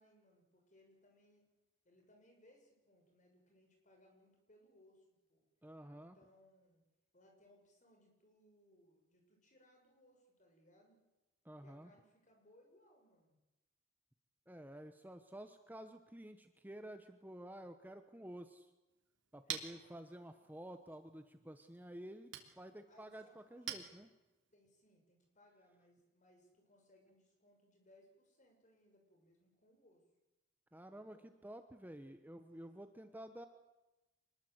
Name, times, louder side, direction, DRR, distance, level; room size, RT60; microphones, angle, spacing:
voice 1, 0.0-1.5 1.8-5.4 5.9-6.8 7.1-11.0 11.6-13.4 19.4-20.6 22.9-23.8 24.5-30.0 30.9-31.3 32.5-32.8, left 1 dB, 40° left, 2 dB, 6.7 m, -68 dB
voice 2, 5.6-6.2 11.4-11.9 14.5-18.7 19.3-23.2 23.5-24.1 30.7-33.5, right 1 dB, 10° right, 8 dB, 1.0 m, -51 dB
Chink clink, 18.9-24.6, right 9 dB, 65° right, 3.2 m, -50 dB
26.0 x 21.0 x 8.0 m, 1.1 s
head